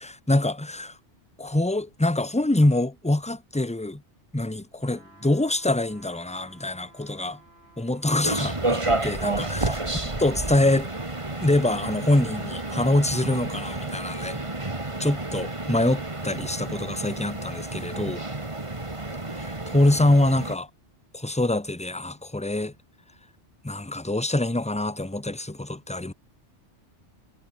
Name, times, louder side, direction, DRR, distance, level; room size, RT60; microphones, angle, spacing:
voice 1, 0.0-1.0 1.4-4.0 4.3-7.4 7.8-9.8 10.2-10.9 11.4-14.4 15.0-18.2 19.4-20.7 21.1-22.7 23.6-26.1, left 1 dB, 5° left, 1.0 m, -25 dB
sound 1, 4.8-8.5 9.0-9.1, right 2 dB, 55° right, 4.5 m, -54 dB
sound 2, 8.2-20.5, right 2 dB, 25° right, 2.2 m, -31 dB
omnidirectional pair, 1.2 m